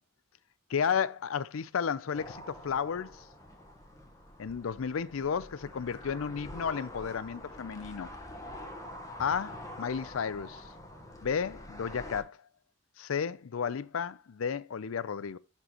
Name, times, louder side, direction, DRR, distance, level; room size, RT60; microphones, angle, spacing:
voice 1, 0.7-3.2 4.4-8.1 9.2-10.6 11.2-12.4 13.0-15.4, left 7 dB, 80° left, 0.5 m, -33 dB
sound 1, 2.1-12.2, left 1 dB, 15° left, 1.2 m, -46 dB
11.0 x 4.5 x 2.9 m
head